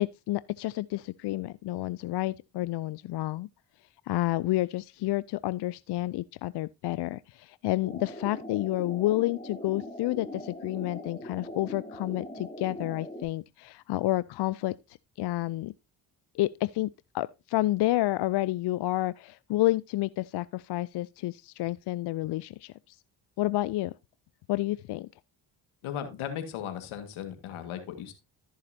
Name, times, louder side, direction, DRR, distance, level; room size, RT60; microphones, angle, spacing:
voice 1, 0.0-3.5 4.1-14.7 15.2-15.7 16.3-16.9 17.1-23.0 23.4-23.9 24.5-25.1, left 17 dB, 55° left, 0.5 m, -30 dB
sound 1, 7.8-13.3, left 1 dB, 10° left, 5.8 m, -41 dB
voice 2, 25.8-28.1, left 9 dB, 75° left, 1.9 m, -36 dB
14.0 x 6.5 x 2.8 m
hypercardioid pair, 45°, 49 cm